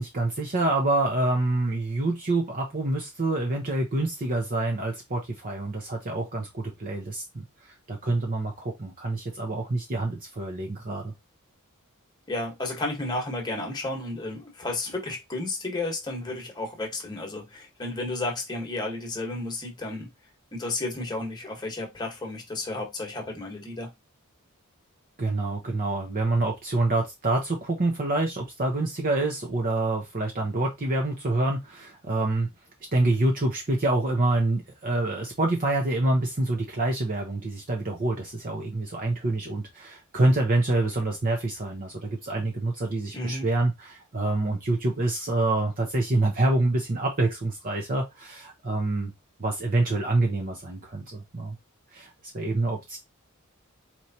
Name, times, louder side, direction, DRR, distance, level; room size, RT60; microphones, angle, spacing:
voice 1, 0.0-11.1 25.2-32.5 32.9-49.1 49.4-51.6 51.9-53.0, right 2 dB, 40° right, 0.8 m, -26 dB
voice 2, 12.3-20.1 20.5-23.9 43.1-43.5, left 2 dB, 20° left, 1.2 m, -32 dB
4.4 x 3.2 x 2.8 m
head